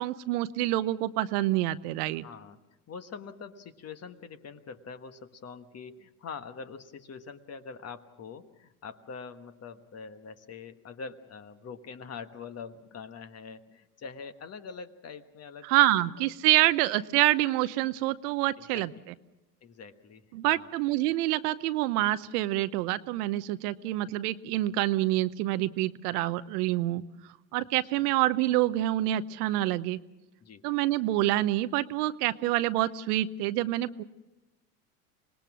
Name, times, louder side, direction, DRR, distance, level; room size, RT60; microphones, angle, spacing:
voice 1, 0.0-2.2 15.6-18.9 20.3-27.0 27.5-30.0 30.6-34.0, right 16 dB, 75° right, 13 dB, 0.9 m, -27 dB
voice 2, 2.2-2.6 2.9-15.7 16.5-16.7 18.7-18.9 19.6-20.7 30.4-30.6, left 5 dB, 30° left, 9 dB, 1.4 m, -44 dB
25.5 x 19.5 x 6.3 m, 0.97 s
supercardioid pair, 105°, 46 cm